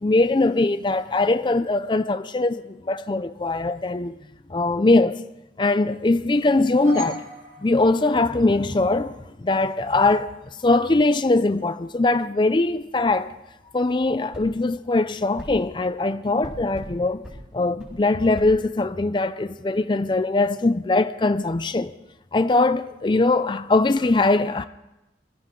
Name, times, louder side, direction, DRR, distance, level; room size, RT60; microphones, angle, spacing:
voice 1, 0.0-4.2 4.5-5.2 5.6-7.2 7.6-10.3 10.6-13.3 13.7-21.9 22.3-24.6, left 2 dB, 25° left, 0.4 m, -21 dB
sound 1, 6.4-8.7, equal, 60° right, 3.4 m, -38 dB
sound 2, 14.3-14.5 15.4-15.5 16.4-16.9 17.2-17.4 17.8-17.9 18.4-18.5, equal, 10° right, 5.1 m, -38 dB
24.0 x 15.5 x 3.8 m
head